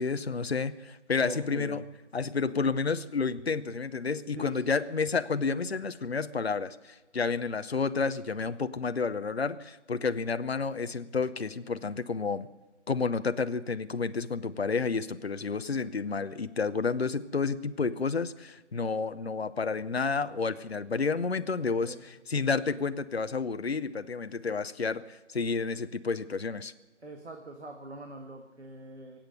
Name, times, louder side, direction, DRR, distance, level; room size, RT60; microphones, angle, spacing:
voice 1, 0.0-1.8 2.1-12.5 12.9-26.7, left 4 dB, 60° left, 12 dB, 0.8 m, -30 dB
voice 2, 1.2-1.8 4.4-4.6 21.6-22.1 27.0-29.2, right 2 dB, 65° right, 3 dB, 1.8 m, -42 dB
23.5 x 8.9 x 6.8 m, 1.1 s
figure-of-eight pair, 175°, 35 cm